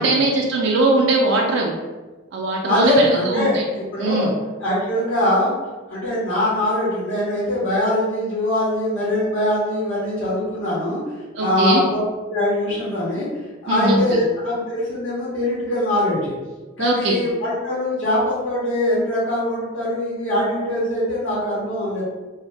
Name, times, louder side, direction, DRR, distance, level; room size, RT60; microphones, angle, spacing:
voice 1, 0.0-1.7 2.3-3.6 4.0-4.3 11.3-11.8 13.7-14.2 16.8-17.2, right 2 dB, 60° right, -2 dB, 0.3 m, -20 dB
voice 2, 2.6-4.3 4.6-5.5 5.9-11.0 11.4-12.0 12.3-13.3 13.6-16.4 16.8-22.0, left 1 dB, 75° left, -8 dB, 0.9 m, -22 dB
2.6 x 2.1 x 3.1 m, 1.3 s
head